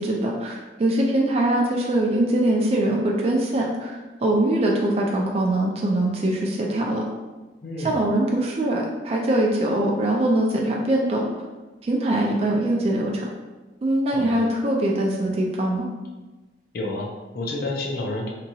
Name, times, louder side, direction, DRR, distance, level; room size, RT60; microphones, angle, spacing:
voice 1, 0.0-7.1 7.8-11.2 11.8-13.3 13.8-15.9, right 1 dB, 35° right, -1 dB, 0.3 m, -22 dB
voice 2, 7.6-8.0 14.1-14.5 16.7-18.3, left 2 dB, 55° left, -1 dB, 0.5 m, -30 dB
2.8 x 2.3 x 2.7 m, 1.2 s
head